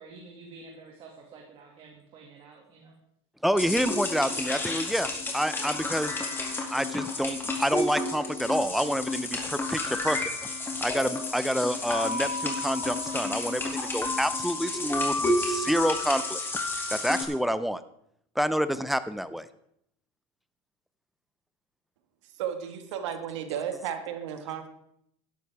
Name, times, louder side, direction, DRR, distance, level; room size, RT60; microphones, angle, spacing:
voice 1, 0.0-2.9, right 3 dB, 40° right, 0 dB, 2.1 m, -49 dB
voice 2, 3.4-6.1 6.7-10.2 10.8-16.4 16.9-17.8 18.4-19.5, equal, ahead, 13 dB, 0.5 m, -28 dB
sound 1, 3.6-17.2, left 2 dB, 15° left, 2.3 m, -31 dB
voice 3, 22.4-24.7, right 8 dB, 90° right, 7 dB, 1.7 m, -33 dB
13.0 x 11.5 x 3.5 m, 0.74 s
supercardioid pair, 140°, 15 cm